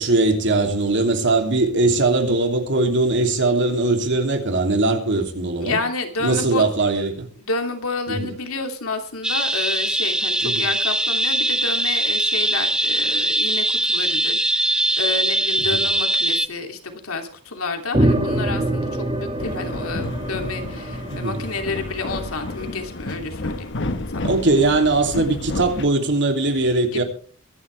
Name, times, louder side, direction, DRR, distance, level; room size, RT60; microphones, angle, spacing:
voice 1, 0.0-5.8 6.2-7.3 8.1-8.3 10.4-10.6 21.1-21.5 24.2-27.0, right 2 dB, 60° right, 3.0 m, -20 dB
voice 2, 5.6-6.7 7.4-23.7 24.1-24.3 26.9-27.0, left 3 dB, 80° left, 2.8 m, -30 dB
sound 1, 9.2-16.5, right 1 dB, 5° right, 0.6 m, -21 dB
sound 2, 17.9-22.6, right 1 dB, 25° right, 2.1 m, -25 dB
sound 3, 19.4-25.9, left 2 dB, 60° left, 1.3 m, -31 dB
24.0 x 11.0 x 3.4 m
head